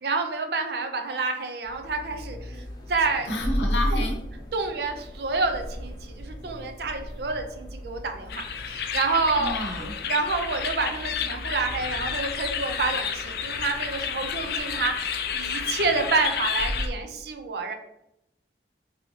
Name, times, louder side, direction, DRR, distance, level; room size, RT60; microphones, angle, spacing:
voice 1, 0.0-2.6 2.9-3.3 3.9-4.0 4.5-17.7, right 3 dB, 65° right, 5 dB, 0.5 m, -28 dB
sound 1, 1.6-16.9, equal, 25° left, 0.6 m, -36 dB
voice 2, 3.3-4.2 9.4-9.9, left 1 dB, 80° left, 2 dB, 0.7 m, -29 dB
sound 2, 8.3-16.9, left 7 dB, 60° left, 0.3 m, -31 dB
3.1 x 2.7 x 3.1 m, 0.80 s
head